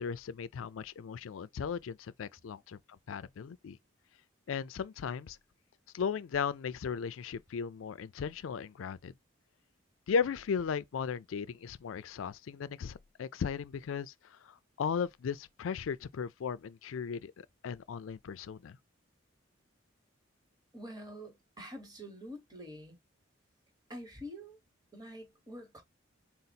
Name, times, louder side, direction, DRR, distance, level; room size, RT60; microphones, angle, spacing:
voice 1, 0.0-3.8 4.5-5.4 5.9-9.1 10.1-18.8, left 6 dB, 85° left, 0.4 m, -36 dB
voice 2, 20.7-23.0 23.9-24.6 24.9-25.8, equal, 20° right, 1.1 m, -46 dB
3.9 x 2.0 x 4.1 m
head